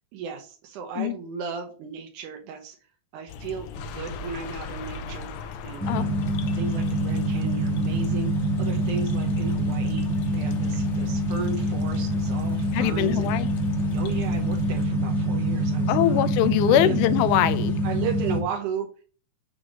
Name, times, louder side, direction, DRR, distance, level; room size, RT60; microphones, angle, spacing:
voice 1, 0.1-2.8 3.1-5.3 5.6-10.1 10.3-13.3 13.9-16.3 16.7-17.0 17.8-19.0, right 6 dB, 85° right, 2.5 m, -35 dB
sound 1, 3.3-14.9, left 4 dB, 70° left, 1.8 m, -39 dB
sound 2, 5.8-18.4, right 1 dB, ahead, 0.9 m, -25 dB
voice 2, 12.7-13.5 15.9-17.8, left 13 dB, 90° left, 2.1 m, -22 dB
6.5 x 3.9 x 6.2 m
omnidirectional pair, 3.5 m